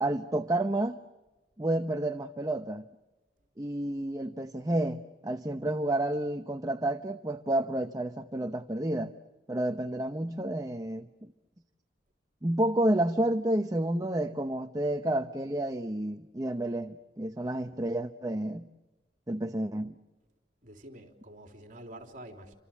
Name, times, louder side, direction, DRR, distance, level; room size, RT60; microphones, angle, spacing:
voice 1, 0.0-1.0 1.6-2.9 3.6-9.1 9.5-11.3 12.4-18.7 19.3-20.0, right 1 dB, 20° right, 0.8 m, -30 dB
voice 2, 20.6-22.6, right 1 dB, 45° right, 3.4 m, -47 dB
29.5 x 25.5 x 7.3 m
head